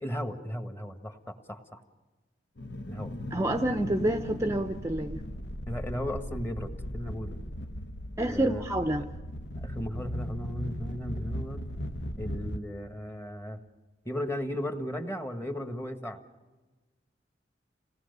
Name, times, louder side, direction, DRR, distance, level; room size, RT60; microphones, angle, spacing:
voice 1, 0.0-1.8 2.9-3.1 5.7-7.4 8.3-8.6 9.0-9.1 9.6-11.6 12.2-13.6 14.0-16.2, equal, 15° left, 7 dB, 1.5 m, -36 dB
sound 1, 2.6-12.6, equal, 75° left, 1.1 m, -37 dB
voice 2, 3.3-5.2 8.2-9.0, right 1 dB, 15° right, 7 dB, 0.7 m, -28 dB
27.5 x 18.5 x 6.8 m, 1.2 s
head